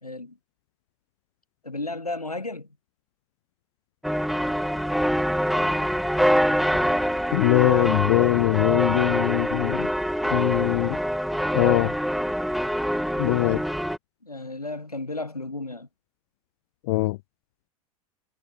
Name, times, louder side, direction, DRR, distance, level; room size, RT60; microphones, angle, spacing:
voice 1, 0.0-0.4 1.6-2.7 14.2-15.9, left 2 dB, 85° left, 2.3 m, -33 dB
sound 1, 4.0-14.0, equal, ahead, 2.5 m, -25 dB
voice 2, 7.3-9.9 10.3-11.0 11.5-11.9 13.2-13.6 16.9-17.2, left 20 dB, 50° left, 0.9 m, -22 dB
figure-of-eight pair, 90°, 19 cm